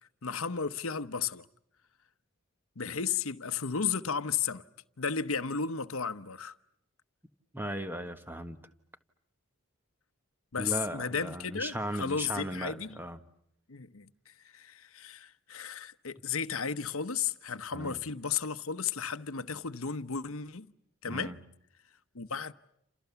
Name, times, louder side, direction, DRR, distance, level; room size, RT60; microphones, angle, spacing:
voice 1, 0.2-1.5 2.8-4.6 5.0-6.6 10.5-13.0 13.7-20.7 21.0-21.4 22.1-22.5, left 6 dB, 70° left, 1.0 m, -34 dB
voice 2, 7.5-8.6 10.6-13.2 17.7-18.0 21.1-21.4, right 1 dB, 10° right, 1.4 m, -37 dB
29.0 x 28.0 x 7.0 m
head